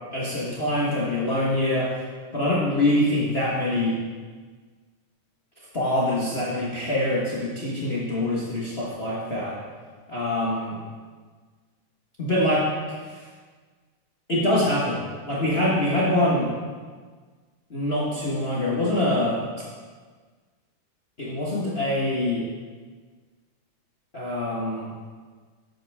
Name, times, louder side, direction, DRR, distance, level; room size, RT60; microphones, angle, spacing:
voice 1, 0.1-1.9 2.3-4.0 5.7-9.6 10.1-10.8 12.2-13.3 14.3-16.5 17.7-19.4 21.2-22.5 24.1-24.9, left 1 dB, 65° left, -7 dB, 0.6 m, -24 dB
13.0 x 8.1 x 3.6 m, 1.5 s
omnidirectional pair, 3.8 m